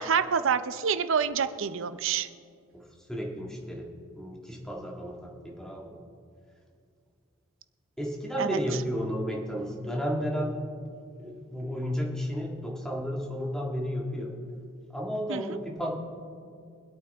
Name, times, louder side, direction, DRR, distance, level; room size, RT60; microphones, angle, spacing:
voice 1, 0.0-2.3 8.4-8.6 15.3-15.6, right 6 dB, 65° right, 12 dB, 0.5 m, -27 dB
voice 2, 3.1-5.9 8.0-10.6 11.2-14.4 14.9-15.9, equal, 5° left, -2 dB, 1.8 m, -32 dB
24.0 x 8.5 x 3.5 m, 2.3 s
head